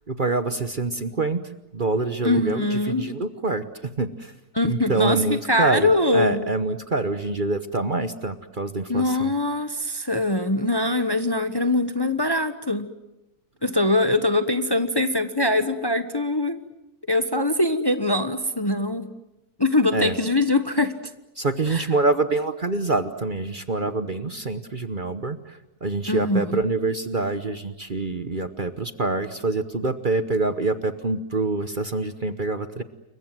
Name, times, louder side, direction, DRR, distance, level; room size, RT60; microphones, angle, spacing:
voice 1, 0.1-1.4 1.7-4.3 4.6-9.3 19.9-20.2 21.4-32.8, right 3 dB, 35° right, 10 dB, 1.1 m, -26 dB
voice 2, 2.2-3.1 4.5-5.2 5.5-6.5 8.9-12.9 13.6-16.6 17.1-19.1 19.6-20.9 21.7-21.8 26.1-26.5, left 2 dB, 20° left, 9 dB, 1.0 m, -22 dB
29.5 x 23.0 x 7.7 m, 0.95 s
omnidirectional pair, 1.6 m